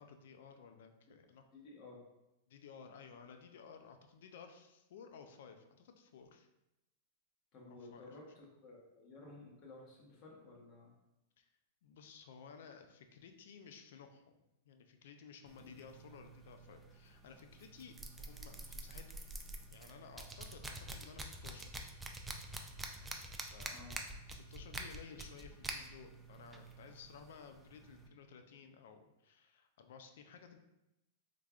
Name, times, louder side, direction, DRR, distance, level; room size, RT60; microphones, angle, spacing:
voice 1, 0.0-1.4 2.5-6.5 7.7-8.2 11.4-11.5 11.8-19.2 19.7-21.7 23.5-23.9 24.3-30.6, left 6 dB, 75° left, 6 dB, 0.4 m, -56 dB
voice 2, 1.5-2.0 7.5-10.9 23.7-23.9, left 2 dB, 40° left, -2 dB, 1.0 m, -54 dB
sound 1, 15.5-28.1, right 2 dB, 10° right, 0.3 m, -48 dB
3.6 x 3.2 x 2.4 m, 0.92 s
supercardioid pair, 140°, 0 cm